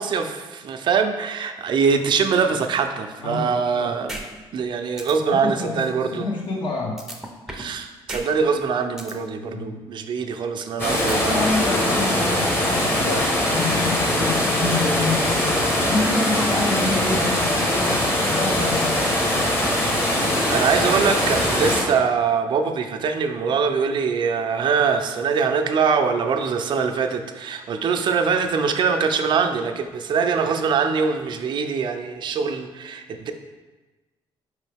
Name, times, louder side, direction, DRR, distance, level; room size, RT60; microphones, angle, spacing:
voice 1, 0.0-4.1 4.5-6.3 7.5-11.5 19.9-33.3, right 6 dB, 55° right, 6 dB, 0.4 m, -23 dB
voice 2, 3.2-3.9 5.2-7.0 9.4-9.8 11.0-19.0, left 3 dB, 55° left, -3 dB, 0.8 m, -28 dB
sound 1, 4.1-4.2 4.6-4.7 5.0-5.1 7.0-7.7 8.1-8.2 8.6-9.1 11.0-11.7, right 1 dB, 5° right, 0.5 m, -34 dB
sound 2, 10.8-21.8, left 1 dB, 20° left, 0.9 m, -21 dB
4.7 x 3.1 x 3.3 m, 1.2 s
cardioid pair, 105°, 10 cm